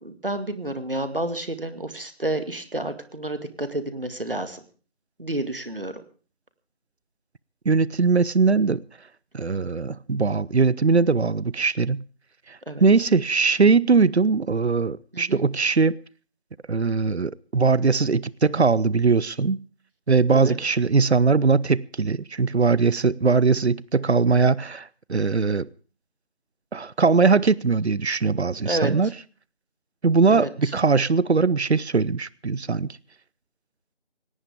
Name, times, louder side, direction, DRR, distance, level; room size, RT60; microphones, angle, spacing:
voice 1, 0.0-4.6 5.2-6.0 12.7-12.8 15.1-15.4 20.3-20.6 28.6-28.9 30.3-30.7, right 1 dB, 55° right, 2.0 m, -30 dB
voice 2, 7.7-8.8 9.3-12.0 12.5-16.0 16.7-19.6 20.1-25.7 26.7-29.1 30.0-32.9, right 4 dB, 90° right, 0.7 m, -21 dB
19.0 x 17.5 x 3.6 m
figure-of-eight pair, 175°, 32 cm